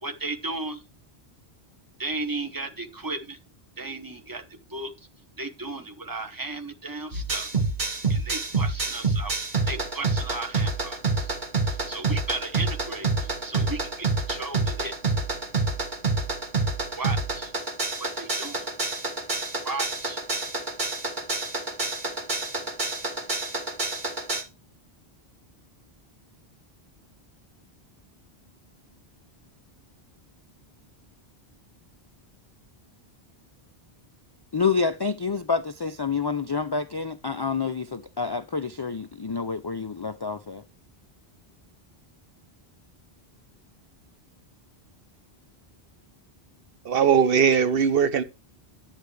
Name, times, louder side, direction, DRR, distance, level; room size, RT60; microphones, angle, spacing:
voice 1, 0.0-0.8 2.0-3.4 3.8-4.4 4.7-4.9 5.4-7.5 8.1-9.3 9.7-11.3 11.7-15.2 17.0-17.5 18.0-18.6 19.6-20.2, right 2 dB, 20° right, 1.0 m, -35 dB
sound 1, 7.1-24.4, right 3 dB, 50° right, 1.7 m, -27 dB
voice 2, 34.5-40.6, left 5 dB, 45° left, 0.3 m, -28 dB
voice 3, 46.8-48.2, right 7 dB, 65° right, 0.9 m, -20 dB
10.5 x 8.0 x 3.2 m
omnidirectional pair, 1.1 m